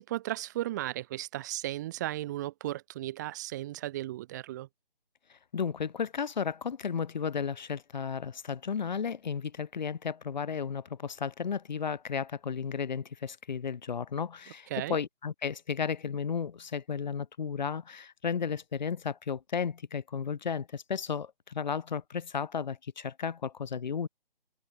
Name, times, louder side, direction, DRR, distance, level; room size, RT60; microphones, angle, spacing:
voice 1, 0.0-4.7 14.7-15.0, right 15 dB, 20° right, 1.1 m, -35 dB
voice 2, 5.5-24.1, left 6 dB, 50° left, 0.9 m, -34 dB
figure-of-eight pair, 150°, 29 cm